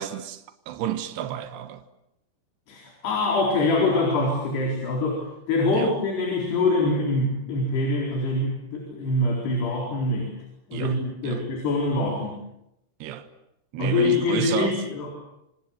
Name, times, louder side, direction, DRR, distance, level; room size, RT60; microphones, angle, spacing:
voice 1, 0.0-1.8 5.7-6.0 10.7-11.0 11.2-11.4 13.0-13.3 13.7-14.8, right 11 dB, 85° right, 3.5 m, -31 dB
voice 2, 2.7-10.3 10.7-12.4 13.8-15.1, left 2 dB, 80° left, 6.4 m, -24 dB
28.5 x 26.0 x 7.3 m
omnidirectional pair, 4.7 m